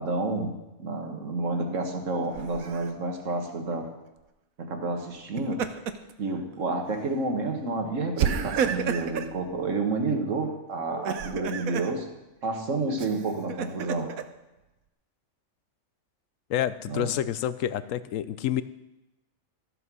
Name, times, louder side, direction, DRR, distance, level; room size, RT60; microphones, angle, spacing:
voice 1, 0.0-3.9 4.6-5.7 6.2-12.1 12.4-14.1 16.9-17.1, right 3 dB, 65° right, 4 dB, 2.0 m, -30 dB
Laughter, 2.3-2.9 5.2-6.1 6.5-6.7 8.2-9.3 10.9-11.9 13.0-14.2, right 7 dB, 80° right, 1.2 m, -30 dB
voice 2, 16.5-18.6, left 11 dB, 70° left, 15 dB, 1.0 m, -28 dB
14.0 x 7.9 x 6.2 m, 0.98 s
omnidirectional pair, 1.5 m